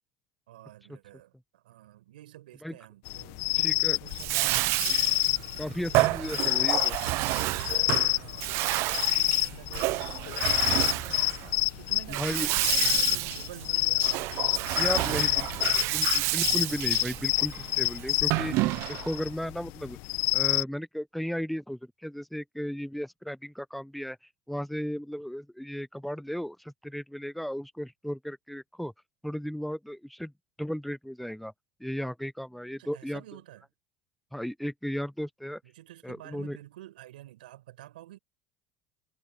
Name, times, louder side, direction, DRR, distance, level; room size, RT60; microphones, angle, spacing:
voice 1, 0.5-4.8 5.5-7.0 7.3-7.8 8.1-14.6 14.9-16.0 32.8-33.7 35.6-38.2, right 14 dB, 90° right, 5.4 m, -49 dB
Parlyu Crickets - close perspective, 3.1-20.6, left 23 dB, 70° left, 0.9 m, -28 dB
voice 2, 3.6-4.0 5.6-6.9 12.1-12.5 14.8-15.5 15.9-20.0 20.3-24.2 24.5-28.9 29.2-30.3 30.6-31.5 31.8-33.2 34.3-35.6 36.0-36.6, equal, ahead, 0.7 m, -35 dB
Bathtub (filling or washing), 4.1-19.2, right 21 dB, 65° right, 0.5 m, -30 dB
Frying (food), 12.4-19.2, right 10 dB, 50° right, 2.7 m, -54 dB
hypercardioid pair, 85°, 5 cm